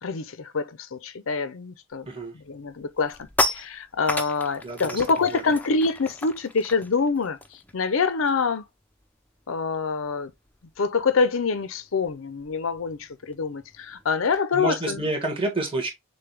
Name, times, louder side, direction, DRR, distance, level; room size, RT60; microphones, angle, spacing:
voice 1, 0.0-2.1 2.5-7.4 7.7-8.7 9.5-10.3 10.8-15.0, left 4 dB, 65° left, 0.6 m, -26 dB
sound 1, 2.0-2.2 2.6-8.6 8.8-9.1 9.4-14.4, left 1 dB, 5° left, 0.4 m, -34 dB
voice 2, 4.6-5.0 5.3-5.4 14.5-15.9, right 2 dB, 25° right, 1.4 m, -28 dB
6.7 x 2.3 x 3.3 m
head